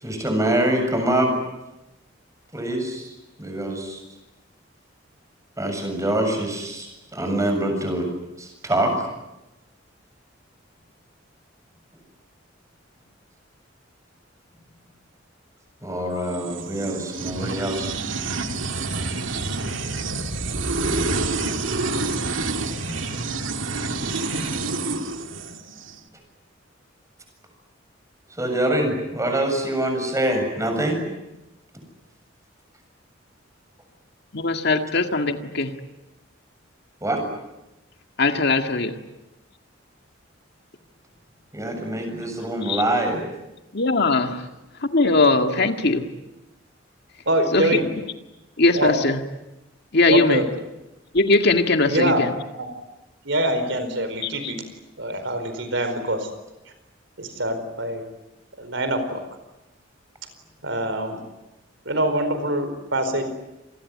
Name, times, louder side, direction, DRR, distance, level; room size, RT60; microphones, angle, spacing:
voice 1, 0.0-1.3 2.5-4.0 5.6-8.1 8.4-9.1 15.8-18.0 28.4-31.0 37.0-37.2 41.5-43.2, right 1 dB, 15° right, 4 dB, 7.2 m, -24 dB
sound 1, 16.2-25.9, right 3 dB, 85° right, 2.2 m, -28 dB
voice 2, 34.3-35.7 38.2-39.0 42.6-42.8 43.7-44.4 44.9-46.0 47.5-47.7 48.6-49.2 49.9-50.4 51.1-52.3 54.2-54.5, left 3 dB, 60° left, 6 dB, 1.9 m, -20 dB
voice 3, 47.3-47.9 48.7-48.9 50.1-50.5 51.9-52.3 52.5-52.7 53.2-54.6 55.0-56.3 57.2-58.0 58.6-59.2 60.6-61.2 61.8-63.2, right 1 dB, 70° right, 9 dB, 4.5 m, -24 dB
27.5 x 21.5 x 9.6 m, 0.95 s
head